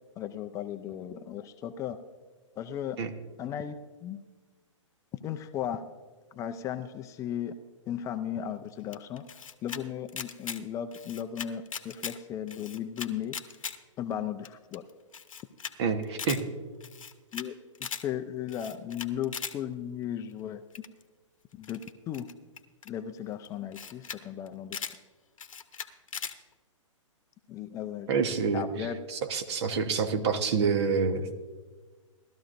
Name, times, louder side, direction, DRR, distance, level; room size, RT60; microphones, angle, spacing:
voice 1, 0.2-2.0 2.6-3.1 3.4-4.2 5.1-5.8 6.3-7.5 7.9-9.3 9.6-13.4 14.0-14.9 17.3-20.9 21.6-22.3 22.9-24.8 27.5-28.1 28.5-29.0 29.6-29.7 30.1-30.2, left 9 dB, 20° left, 8 dB, 0.4 m, -36 dB
Camera, 8.9-9.8 10.1-10.6 10.9-12.2 12.5-13.8 14.1-14.2 14.4-14.5 14.7-14.8 15.1-15.7 16.0-16.4 16.8-17.5 17.7-18.0 18.5-19.5 20.7-21.0 21.6-22.9 23.4-23.5 23.7-24.2 24.5-25.0 25.4-26.3, left 6 dB, 80° left, 0.9 m, -39 dB
voice 2, 15.8-16.4 28.1-28.6 29.1-31.3, right 5 dB, 55° right, 8 dB, 1.3 m, -27 dB
18.5 x 13.0 x 2.6 m, 1.4 s
hypercardioid pair, 130°, 17 cm